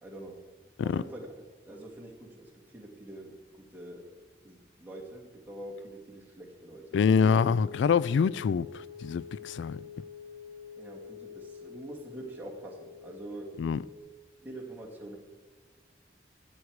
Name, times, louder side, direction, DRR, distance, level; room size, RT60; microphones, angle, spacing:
voice 1, 0.0-0.4 0.8-1.3 1.6-4.1 4.4-7.4 10.8-13.6 14.4-15.2, right 1 dB, 10° right, 2.2 m, -45 dB
voice 2, 6.9-8.7 9.0-9.8 13.6-13.8, left 6 dB, 90° left, 0.3 m, -25 dB
sound 1, 7.4-14.0, left 6 dB, 40° left, 1.0 m, -47 dB
14.5 x 8.5 x 4.8 m
head